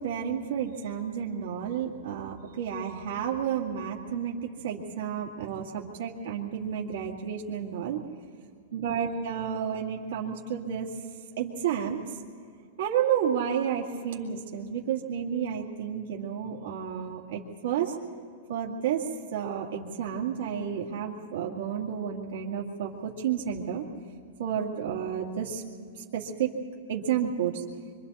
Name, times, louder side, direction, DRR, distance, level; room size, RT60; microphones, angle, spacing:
voice 1, 0.0-8.0 8.7-10.9 11.4-12.0 12.8-17.9 18.5-19.0 19.3-23.8 24.4-25.6 26.1-26.5 26.9-27.6, right 8 dB, 80° right, -2 dB, 2.2 m, -31 dB
25.0 x 25.0 x 4.2 m, 2.3 s
supercardioid pair, 160°, 0 cm